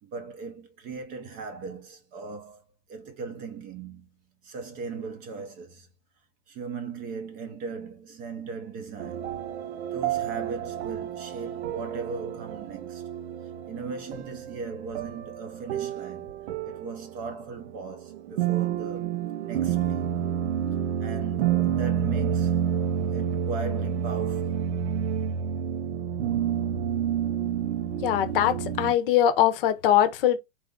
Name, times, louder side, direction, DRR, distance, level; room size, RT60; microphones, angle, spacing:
voice 1, 0.0-2.6 2.9-4.1 4.4-5.9 6.5-9.3 9.8-13.0 13.7-16.3 16.6-19.1 19.4-20.2 21.0-22.6 23.1-24.7, right 4 dB, 25° right, 0.5 m, -38 dB
sound 1, 9.0-28.9, right 9 dB, 75° right, 0.6 m, -29 dB
voice 2, 28.0-30.4, left 11 dB, 50° left, 0.7 m, -22 dB
3.8 x 2.4 x 3.6 m
hypercardioid pair, 145°, 35 cm